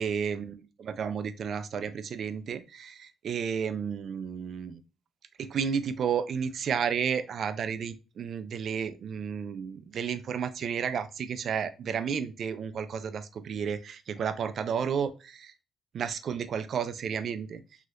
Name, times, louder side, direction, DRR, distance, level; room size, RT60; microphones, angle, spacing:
voice 1, 0.0-4.8 5.4-15.5 15.9-17.6, right 7 dB, 60° right, 12 dB, 0.3 m, -32 dB
3.0 x 2.8 x 2.4 m, 0.30 s
cardioid pair, 90°, 0 cm